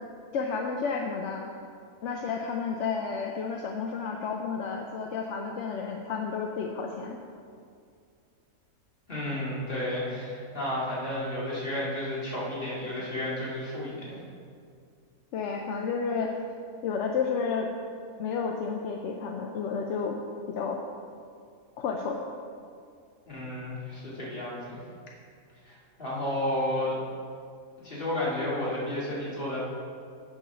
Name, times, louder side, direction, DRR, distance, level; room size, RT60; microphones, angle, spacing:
voice 1, 0.3-1.5 2.0-7.2 15.3-16.3 16.8-17.7 18.2-20.2 20.5-20.8 21.8-22.2, left 5 dB, 65° left, 2 dB, 0.8 m, -31 dB
voice 2, 9.1-14.2 23.3-24.8 25.6-27.0 27.8-29.6, left 1 dB, 40° left, -7 dB, 2.3 m, -32 dB
8.9 x 4.7 x 5.8 m, 2.3 s
omnidirectional pair, 1.5 m